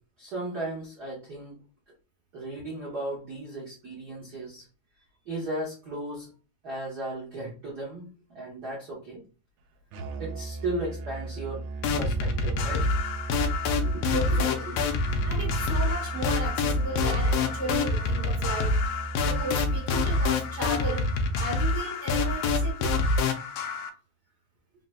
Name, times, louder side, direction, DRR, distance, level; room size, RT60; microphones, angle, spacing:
voice 1, 0.2-1.6 2.3-4.6 5.3-6.3 6.6-8.0 8.3-9.2 10.2-11.6 12.0-13.0 13.8-14.4, right 1 dB, 55° right, -5 dB, 1.1 m, -35 dB
Musical instrument, 9.9-21.6, right 3 dB, 80° right, 1.8 m, -37 dB
sound 1, 11.8-23.9, left 3 dB, 80° left, 1.4 m, -26 dB
voice 2, 14.1-14.8 15.2-18.7 19.2-21.1 21.4-23.0, right 2 dB, 35° right, -4 dB, 1.7 m, -35 dB
4.2 x 4.0 x 2.3 m, 0.35 s
omnidirectional pair, 3.4 m